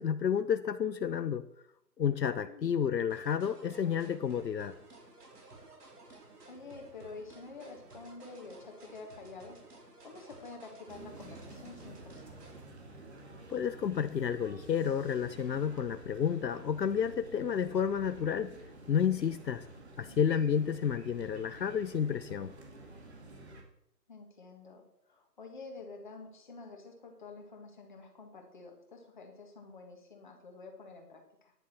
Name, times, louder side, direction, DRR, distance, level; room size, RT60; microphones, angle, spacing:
voice 1, 0.0-1.5 2.0-4.7 13.5-18.5 18.9-19.6 20.0-22.5, left 8 dB, 75° left, 12 dB, 0.8 m, -31 dB
voice 2, 2.4-2.7 6.5-12.4 20.0-20.2 24.1-31.5, left 3 dB, 30° left, 2 dB, 1.8 m, -49 dB
sound 1, 3.1-12.7, right 2 dB, 65° right, 4.0 m, -55 dB
sound 2, 10.9-23.6, right 2 dB, 40° right, 2.4 m, -50 dB
10.5 x 10.5 x 4.5 m, 0.77 s
hypercardioid pair, 175°, 50 cm